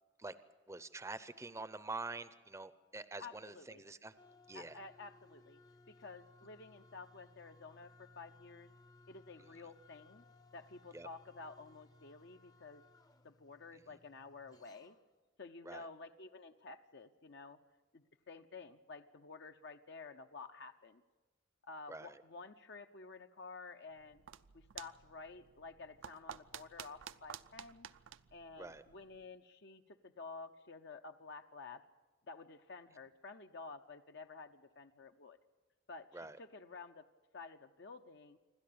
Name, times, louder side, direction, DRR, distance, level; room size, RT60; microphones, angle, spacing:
voice 1, 0.7-4.1 4.5-4.8 10.9-11.1 13.7-13.8 15.6-15.9 21.9-22.2 28.6-28.8 36.1-36.4, right 3 dB, 15° right, 13 dB, 0.6 m, -46 dB
voice 2, 3.2-3.8 4.5-5.6 5.9-8.7 9.1-10.2 10.5-12.8 13.2-15.0 15.4-17.6 17.9-21.0 21.6-24.2 24.5-27.9 28.3-31.8 32.3-35.4 35.9-37.0 37.3-38.4, left 4 dB, 60° left, 7 dB, 0.7 m, -52 dB
sound 1, 4.2-15.1, left 2 dB, 20° left, 0.7 m, -64 dB
sound 2, 23.9-29.3, right 9 dB, 70° right, 0.6 m, -52 dB
27.5 x 12.5 x 8.6 m, 1.3 s
head